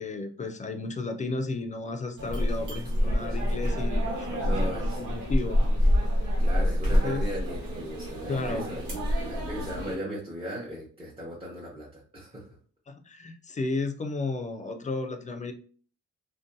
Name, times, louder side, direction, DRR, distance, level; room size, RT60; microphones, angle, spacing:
voice 1, 0.0-4.7 5.0-5.7 6.9-7.2 8.3-8.8 12.9-15.5, left 3 dB, 25° left, 6 dB, 0.3 m, -33 dB
sound 1, 2.2-10.0, equal, 90° right, 1.2 m, -27 dB
voice 2, 4.4-5.2 6.4-12.5, right 1 dB, 20° right, -6 dB, 0.7 m, -37 dB
2.5 x 2.2 x 2.6 m, 0.42 s
cardioid pair, 90°, 30 cm